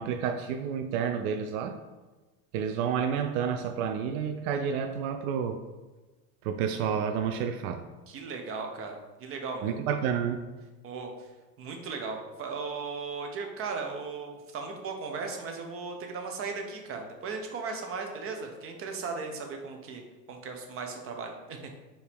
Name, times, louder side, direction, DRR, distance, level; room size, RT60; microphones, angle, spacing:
voice 1, 0.0-1.8 2.5-5.6 6.4-7.8 9.6-10.5, right 7 dB, 65° right, 7 dB, 0.5 m, -30 dB
voice 2, 8.1-9.8 10.8-11.3 11.6-20.0 20.3-21.7, right 4 dB, 30° right, 3 dB, 0.7 m, -37 dB
4.6 x 2.8 x 3.4 m, 1.2 s
supercardioid pair, 110°, 47 cm